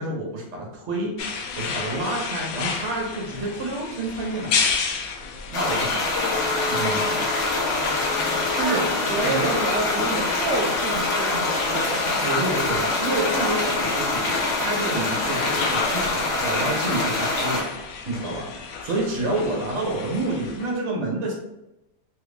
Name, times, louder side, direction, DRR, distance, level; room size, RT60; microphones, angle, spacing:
voice 1, 0.0-4.7 5.5-6.1 6.7-7.3 8.5-9.6 12.2-17.7 18.1-21.3, right 2 dB, 50° right, -1 dB, 0.9 m, -29 dB
sound 1, 1.2-20.7, left 5 dB, 80° left, 1.2 m, -31 dB
sound 2, 5.5-17.6, left 2 dB, 55° left, 0.9 m, -25 dB
voice 2, 9.1-12.3, right 3 dB, 75° right, -1 dB, 1.1 m, -29 dB
3.3 x 2.5 x 3.3 m, 0.94 s
omnidirectional pair, 2.0 m